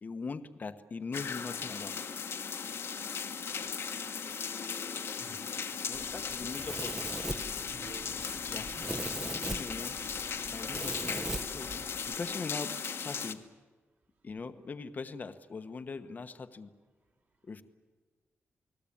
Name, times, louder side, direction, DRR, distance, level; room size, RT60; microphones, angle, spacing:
voice 1, 0.0-1.9 5.9-7.0 8.5-8.8 9.2-10.0 10.5-11.7 12.1-13.4 14.2-16.7 17.5-17.6, left 4 dB, 35° left, 10 dB, 1.1 m, -41 dB
sound 1, 1.1-13.3, left 6 dB, 60° left, 1.3 m, -37 dB
voice 2, 5.2-5.5 7.6-8.3, right 3 dB, 50° right, -2 dB, 3.7 m, -50 dB
Domestic sounds home sounds, 5.9-12.1, right 1 dB, 10° right, 0.9 m, -40 dB
29.0 x 20.0 x 8.7 m, 1.4 s
wide cardioid pair, 160°, 5 cm